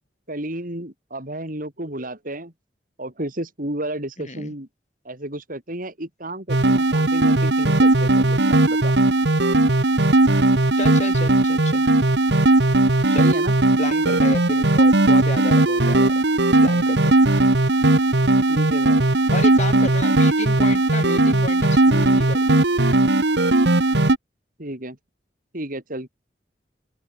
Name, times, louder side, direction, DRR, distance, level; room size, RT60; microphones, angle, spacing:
voice 1, 0.3-2.5 3.0-4.7 5.1-8.9 13.2-13.5 18.5-19.1 24.6-25.0 25.5-26.1, right 1 dB, 50° right, 5.2 m, -32 dB
voice 2, 4.2-4.5 10.7-11.9 13.1-13.3 13.8-16.2 16.6-17.2 19.3-22.6, left 2 dB, 40° left, 5.1 m, -32 dB
sound 1, 6.5-24.2, right 2 dB, 70° right, 1.8 m, -17 dB
open air
head